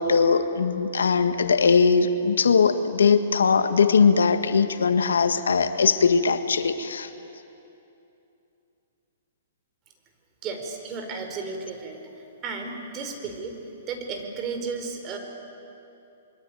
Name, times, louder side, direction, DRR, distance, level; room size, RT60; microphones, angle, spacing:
voice 1, 0.0-7.1, left 5 dB, 85° left, 9 dB, 1.5 m, -20 dB
voice 2, 10.4-12.0 12.4-13.6 13.9-15.2, right 4 dB, 30° right, 4 dB, 4.6 m, -33 dB
26.0 x 22.5 x 9.3 m, 2.8 s
hypercardioid pair, 130°, 0 cm